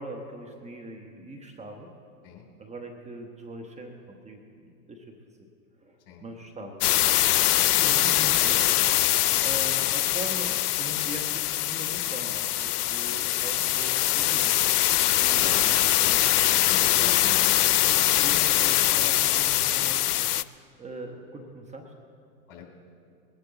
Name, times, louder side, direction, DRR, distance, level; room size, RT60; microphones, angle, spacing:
voice 1, 0.0-1.9 2.6-5.5 5.8-6.8 7.8-8.7 9.4-14.6 15.2-16.3 17.0-20.2 20.8-21.9, right 1 dB, 15° right, 2 dB, 1.1 m, -41 dB
sound 1, 6.8-20.4, left 14 dB, 80° left, 0.6 m, -23 dB
voice 2, 15.2-15.6 16.5-17.2 18.3-18.5 22.5-22.7, left 7 dB, 45° left, 2 dB, 3.0 m, -44 dB
21.0 x 11.5 x 4.0 m, 2.4 s
hypercardioid pair, 110°, 46 cm